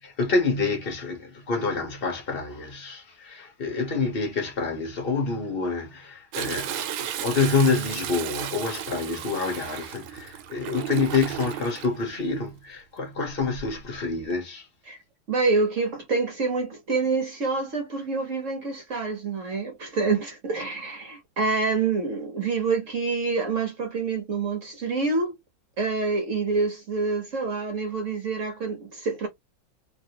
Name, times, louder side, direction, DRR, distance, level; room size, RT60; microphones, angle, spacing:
voice 1, 0.0-14.7, left 4 dB, 40° left, 0.9 m, -27 dB
Toilet flush, 6.3-11.9 13.3-13.8 14.3-14.4, right 11 dB, 85° right, 1.4 m, -34 dB
voice 2, 15.3-25.4 25.8-29.3, right 4 dB, 55° right, 0.9 m, -27 dB
3.0 x 2.8 x 2.8 m
omnidirectional pair, 2.2 m